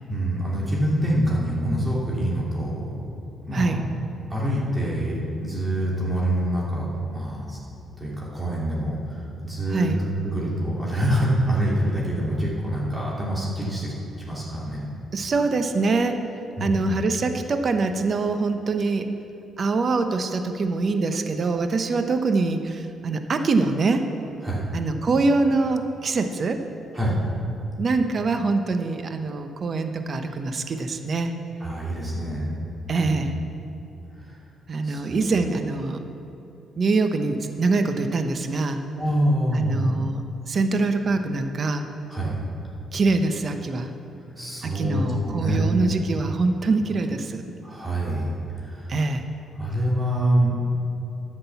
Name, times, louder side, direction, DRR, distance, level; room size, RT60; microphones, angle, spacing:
voice 1, 0.1-2.9 3.4-3.8 4.3-7.6 8.0-14.8 16.6-16.9 24.4-24.6 26.9-27.2 31.6-32.5 33.0-33.2 34.2-34.4 34.8-35.2 38.9-39.9 42.1-42.4 44.4-45.8 47.6-49.0 49.6-50.6, right 1 dB, 20° right, -5 dB, 2.9 m, -26 dB
voice 2, 15.1-16.2 16.6-19.1 19.6-24.1 24.7-26.7 27.8-31.3 32.9-33.3 34.7-36.0 36.8-38.8 39.5-41.8 42.9-43.9 44.6-47.4 48.9-49.3, right 3 dB, 45° right, 7 dB, 0.9 m, -24 dB
10.5 x 7.7 x 7.0 m, 2.8 s
cardioid pair, 90°, 0 cm